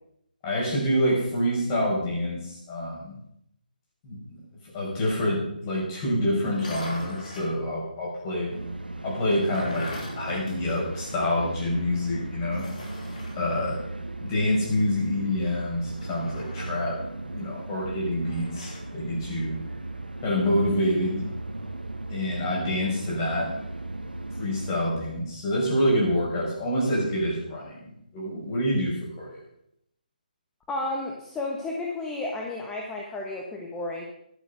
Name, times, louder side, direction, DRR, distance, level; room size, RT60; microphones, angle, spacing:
voice 1, 0.4-3.2 4.0-4.4 4.7-8.5 9.0-12.7 13.3-13.8 14.2-17.0 17.3-19.6 20.2-21.3 22.1-23.6 24.4-29.4, left 1 dB, 25° left, -3 dB, 5.5 m, -27 dB
sound 1, 6.5-7.6 9.1-11.3 11.6-11.7 12.5-13.4 15.9-16.9 18.2-18.9, left 1 dB, 55° left, 4.2 m, -40 dB
sound 2, 8.5-24.7, right 2 dB, 85° right, 1.2 m, -37 dB
voice 2, 30.7-34.1, left 2 dB, 10° left, -1 dB, 1.2 m, -32 dB
12.5 x 11.5 x 5.1 m, 0.74 s
figure-of-eight pair, 145°, 5 cm